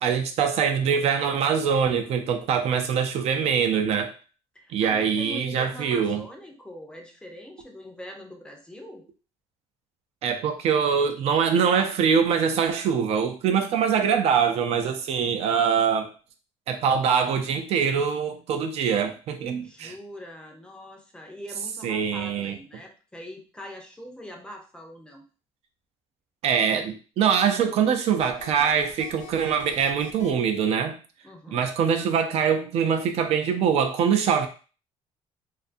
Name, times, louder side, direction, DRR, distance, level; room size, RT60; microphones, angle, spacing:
voice 1, 0.0-4.1 4.7-6.2 10.2-16.1 16.7-19.9 21.8-22.5 26.4-31.0 31.5-34.5, right 7 dB, 60° right, 6 dB, 0.4 m, -23 dB
voice 2, 4.5-9.0 15.1-15.5 19.6-25.2 31.2-31.7, equal, 5° left, 1 dB, 0.5 m, -43 dB
sound 1, 28.2-30.3, left 6 dB, 80° left, 0.4 m, -43 dB
2.5 x 2.4 x 2.4 m, 0.36 s
cardioid pair, 135°, 12 cm